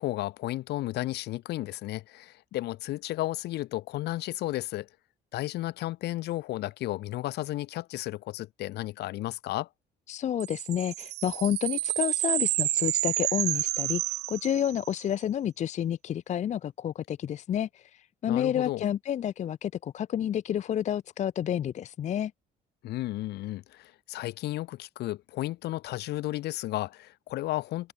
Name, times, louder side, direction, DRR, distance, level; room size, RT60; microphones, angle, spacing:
voice 1, 0.0-4.9 5.3-9.7 18.3-18.8 22.8-27.9, left 16 dB, 80° left, 2.8 m, -33 dB
voice 2, 10.1-14.0 14.3-22.3, left 10 dB, 45° left, 0.6 m, -30 dB
sound 1, 10.4-15.0, right 17 dB, 80° right, 1.9 m, -29 dB
cardioid pair, 110°, 17 cm